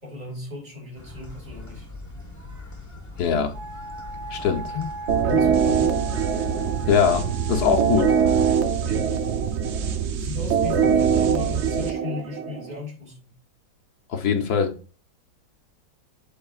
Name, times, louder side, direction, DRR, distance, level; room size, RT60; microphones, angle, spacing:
voice 1, 0.0-1.9 4.7-4.9 5.2-6.0 8.8-9.2 10.2-13.3, left 5 dB, 25° right, 3.0 m, -36 dB
sound 1, 0.9-8.7, left 2 dB, 10° left, 1.0 m, -40 dB
voice 2, 3.2-3.5 4.3-4.7 6.9-8.1 14.1-14.7, left 7 dB, 60° left, 1.4 m, -22 dB
Wind instrument woodwind instrument, 3.5-8.7, right 2 dB, 70° right, 4.7 m, -38 dB
sound 2, 5.1-12.7, right 7 dB, 85° right, 0.6 m, -23 dB
12.5 x 4.7 x 2.4 m
omnidirectional pair, 2.0 m